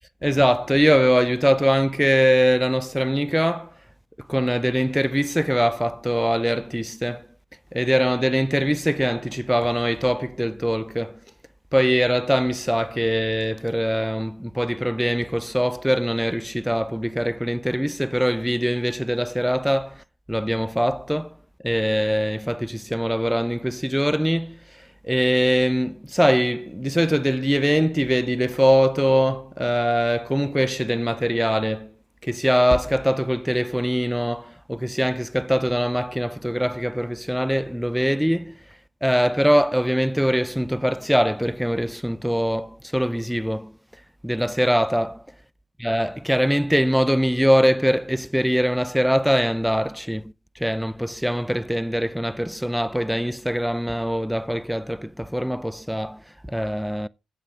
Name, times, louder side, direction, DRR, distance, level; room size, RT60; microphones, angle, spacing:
voice 1, 0.2-3.7 4.2-7.3 7.7-11.2 11.7-21.4 21.6-31.9 32.2-38.6 39.0-43.7 44.2-45.2 45.8-57.1, equal, ahead, 0.4 m, -22 dB
18.0 x 7.5 x 2.4 m
hypercardioid pair, 45°, 0 cm